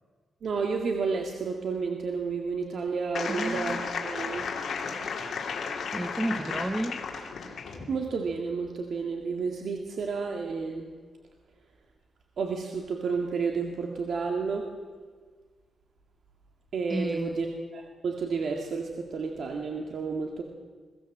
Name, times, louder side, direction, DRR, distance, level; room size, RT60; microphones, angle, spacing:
voice 1, 0.4-4.5 7.9-10.9 12.4-14.7 16.7-17.5 17.7-20.4, right 5 dB, 60° right, 2.0 m, -31 dB
sound 1, 3.1-7.8, left 5 dB, 60° left, 2.9 m, -34 dB
voice 2, 3.3-3.9 5.9-7.0 16.9-17.4, right 1 dB, 10° right, 0.9 m, -32 dB
22.5 x 16.5 x 7.4 m
wide cardioid pair, 155°, 0 cm